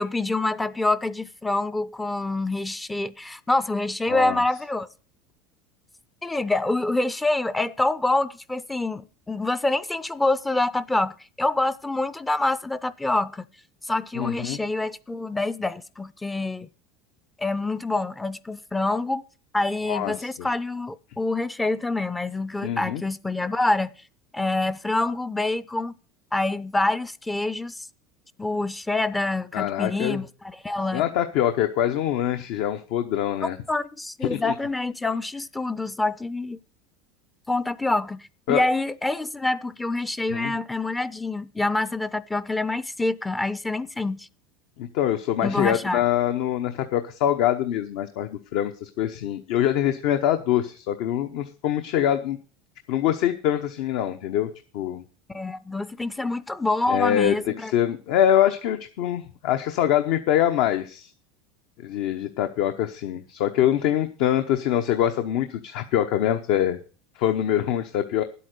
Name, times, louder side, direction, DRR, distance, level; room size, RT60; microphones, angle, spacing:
voice 1, 0.0-4.9 6.2-13.4 13.8-16.7 17.4-19.2 19.5-23.9 24.3-25.9 26.3-27.9 28.4-31.0 33.7-36.6 37.5-44.3 45.4-46.0 55.3-57.7, left 2 dB, 10° left, 0.5 m, -26 dB
voice 2, 4.1-4.4 14.2-14.6 19.9-20.5 22.6-23.0 29.5-30.2 30.9-33.6 34.2-34.5 38.5-38.6 40.3-40.6 44.8-52.4 52.9-55.0 56.9-61.1 61.8-66.8 67.1-68.2, left 11 dB, 65° left, 0.9 m, -24 dB
10.0 x 8.4 x 6.6 m
supercardioid pair, 130°, 0 cm